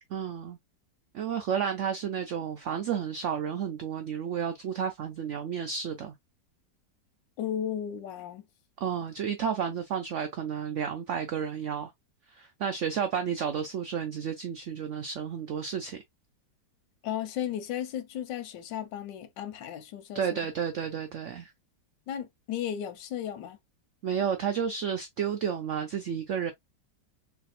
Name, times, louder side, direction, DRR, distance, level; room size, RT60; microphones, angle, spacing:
voice 1, 0.1-0.6 1.1-6.1 8.8-11.9 12.3-16.0 20.1-21.5 24.0-26.5, right 7 dB, 90° right, 0.6 m, -31 dB
voice 2, 7.4-8.4 17.0-20.5 22.1-23.6, left 10 dB, 90° left, 1.3 m, -35 dB
3.3 x 2.1 x 4.1 m
omnidirectional pair, 1.9 m